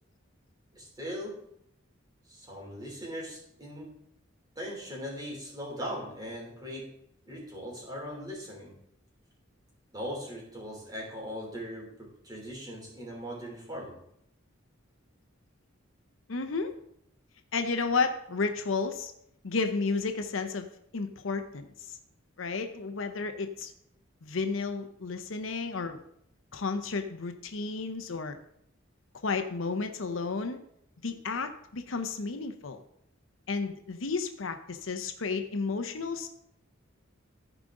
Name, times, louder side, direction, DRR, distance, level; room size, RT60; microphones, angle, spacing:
voice 1, 0.7-1.4 2.3-3.9 4.5-6.9 7.2-8.8 9.9-14.0, equal, 20° right, -2 dB, 3.2 m, -39 dB
voice 2, 16.3-16.8 17.5-19.1 19.4-20.7 20.9-22.0 22.4-23.7 24.2-26.0 26.5-28.4 29.2-30.6 31.0-32.8 33.5-36.3, left 4 dB, 70° left, 7 dB, 0.8 m, -32 dB
14.5 x 5.0 x 3.8 m, 0.74 s
head